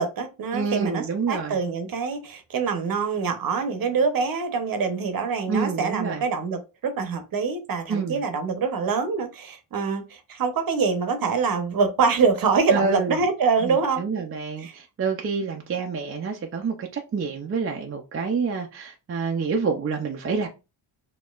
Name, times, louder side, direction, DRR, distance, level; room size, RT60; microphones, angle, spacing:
voice 1, 0.0-14.3 14.6-14.7, right 5 dB, 50° right, 0.9 m, -25 dB
voice 2, 0.5-1.6 5.5-6.2 7.9-8.2 12.7-13.2 13.6-20.5, right 5 dB, 30° right, 0.5 m, -27 dB
4.2 x 2.9 x 2.4 m
cardioid pair, 95°, 45 cm